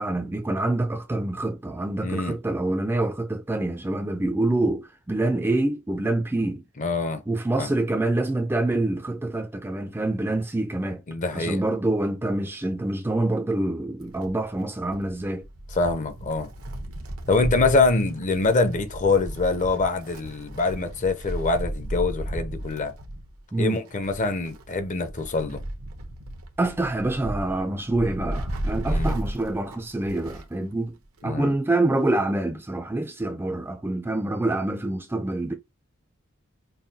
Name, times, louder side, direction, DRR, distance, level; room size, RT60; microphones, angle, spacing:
voice 1, 0.0-6.6 7.3-11.0 11.3-15.5 23.5-23.8 26.6-30.9 31.2-35.5, right 2 dB, 10° right, 0.3 m, -26 dB
voice 2, 2.0-2.4 6.8-7.2 7.6-7.7 11.1-11.6 15.7-16.5 17.3-22.9 23.6-25.6 28.9-29.2 31.2-31.5, left 3 dB, 35° left, 0.6 m, -24 dB
Wind, 14.0-30.6 30.9-31.0 32.0-32.1, right 1 dB, 90° right, 0.8 m, -34 dB
5.5 x 2.3 x 2.7 m
head